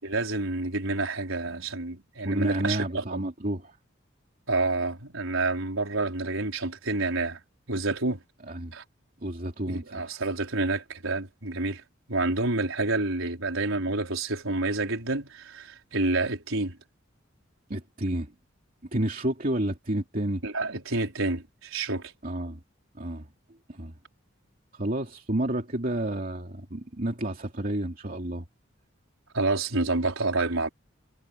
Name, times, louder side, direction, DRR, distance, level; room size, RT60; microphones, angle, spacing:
voice 1, 0.0-3.2 4.5-7.4 7.7-8.2 8.7-8.8 9.7-11.8 12.1-16.8 20.4-22.1 29.3-30.7, right 2 dB, 85° right, 4.7 m, -28 dB
voice 2, 2.2-3.8 8.4-8.7 9.2-10.2 17.7-18.3 18.9-20.4 22.2-22.6 23.0-23.3 23.7-24.0 24.7-28.5, right 1 dB, 45° right, 2.8 m, -30 dB
head